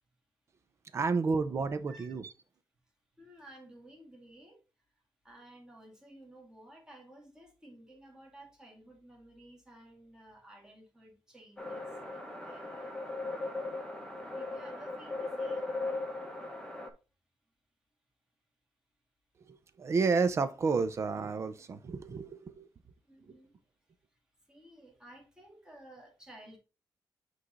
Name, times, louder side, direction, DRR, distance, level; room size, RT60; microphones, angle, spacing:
voice 1, 0.9-2.3 19.5-22.7 23.3-23.4, right 4 dB, 40° right, 0.6 m, -31 dB
voice 2, 3.1-4.6 5.2-13.0 14.3-15.7 23.1-23.6 24.5-26.6, right 1 dB, 10° right, 1.7 m, -55 dB
sound 1, 11.6-16.9, left 2 dB, 10° left, 0.9 m, -38 dB
8.2 x 3.2 x 3.8 m
wide cardioid pair, 175°, 8 cm